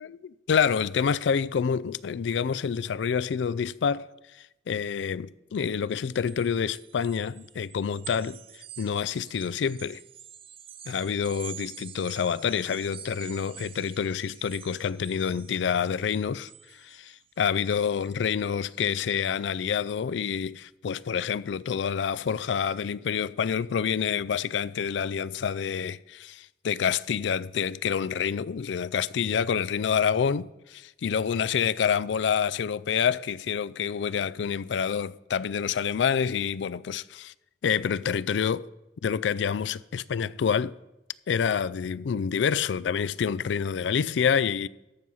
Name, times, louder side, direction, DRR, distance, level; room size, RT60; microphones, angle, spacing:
voice 1, 0.0-4.1 4.3-10.0 10.9-37.3 37.6-38.7 39.0-40.8 41.3-44.7, left 7 dB, 80° left, 0.4 m, -27 dB
sound 1, 6.1-18.2, right 10 dB, 30° right, 0.4 m, -48 dB
13.5 x 5.5 x 6.3 m
head